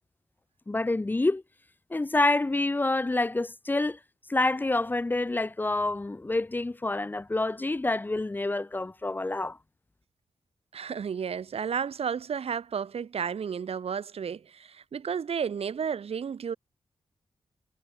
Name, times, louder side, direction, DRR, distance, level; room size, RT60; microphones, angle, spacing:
voice 1, 0.7-1.4 1.9-4.0 4.3-9.6, left 2 dB, 20° left, 2.0 m, -27 dB
voice 2, 10.7-16.5, right 7 dB, 75° right, 7.9 m, -32 dB
wide cardioid pair, 175°, 10 cm